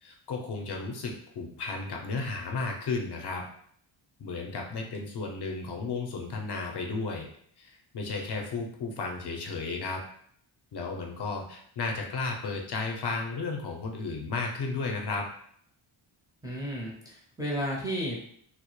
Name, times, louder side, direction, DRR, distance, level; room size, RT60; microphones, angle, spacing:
voice 1, 0.0-3.4 4.2-7.3 7.6-10.0 10.7-15.2, left 3 dB, 55° left, 1 dB, 0.6 m, -33 dB
voice 2, 16.4-18.2, equal, 10° right, -4 dB, 0.4 m, -33 dB
2.1 x 2.0 x 2.9 m, 0.65 s
cardioid pair, 90°, 50 cm